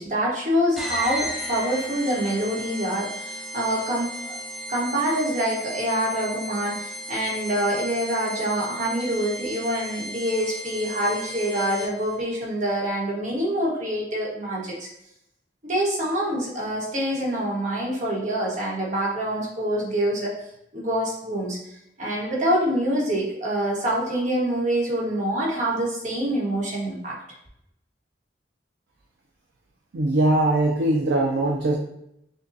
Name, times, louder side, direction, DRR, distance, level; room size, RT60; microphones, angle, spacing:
voice 1, 0.0-4.4 4.7-14.9 15.6-20.3 20.7-21.6 22.0-27.2, right 1 dB, 45° right, -4 dB, 1.2 m, -26 dB
sound 1, 0.8-12.1, equal, ahead, 0.4 m, -35 dB
voice 2, 29.9-31.7, right 2 dB, 80° right, -1 dB, 0.5 m, -21 dB
6.4 x 2.3 x 2.6 m, 0.79 s
head